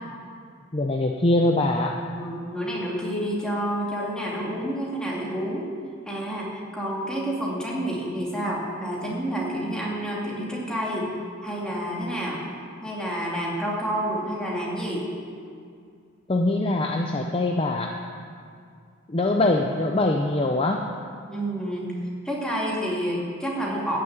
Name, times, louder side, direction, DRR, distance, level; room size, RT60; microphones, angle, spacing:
voice 1, 0.7-2.0 16.3-18.0 19.1-20.9, left 2 dB, 25° left, 2 dB, 0.6 m, -23 dB
voice 2, 2.2-5.7 6.1-11.1 11.4-12.4 12.8-15.1 21.3-21.9 22.2-24.0, equal, 5° left, -4 dB, 2.5 m, -29 dB
14.5 x 6.7 x 8.9 m, 2.3 s
head